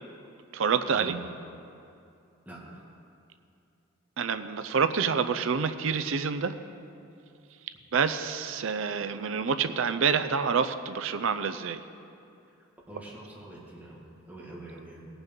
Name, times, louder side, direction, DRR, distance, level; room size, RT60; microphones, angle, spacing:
voice 1, 0.5-1.2 4.2-6.5 7.9-11.8, right 6 dB, 65° right, 10 dB, 0.5 m, -27 dB
voice 2, 2.5-2.9 12.9-15.1, right 2 dB, 5° right, -6 dB, 1.9 m, -45 dB
17.0 x 6.0 x 5.3 m, 2.6 s
head